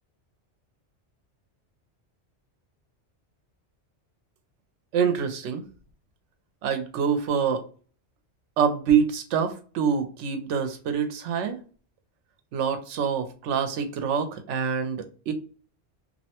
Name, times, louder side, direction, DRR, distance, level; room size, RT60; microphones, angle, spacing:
voice 1, 4.9-5.6 6.6-7.6 8.6-11.6 12.5-15.3, right 7 dB, 85° right, 0.9 m, -26 dB
2.6 x 2.1 x 2.7 m
omnidirectional pair, 1.2 m